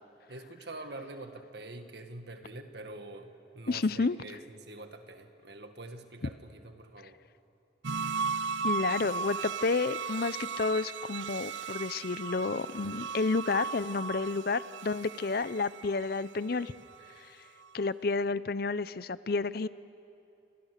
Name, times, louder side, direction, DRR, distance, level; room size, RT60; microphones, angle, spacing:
voice 1, 0.3-7.2, right 2 dB, 65° right, 6 dB, 1.8 m, -45 dB
voice 2, 3.7-4.2 8.6-16.7 17.7-19.7, left 3 dB, 55° left, 16 dB, 0.6 m, -30 dB
sound 1, 7.8-17.2 17.6-17.7, right 5 dB, 80° right, 0.7 m, -37 dB
29.5 x 27.0 x 6.6 m, 2.7 s
head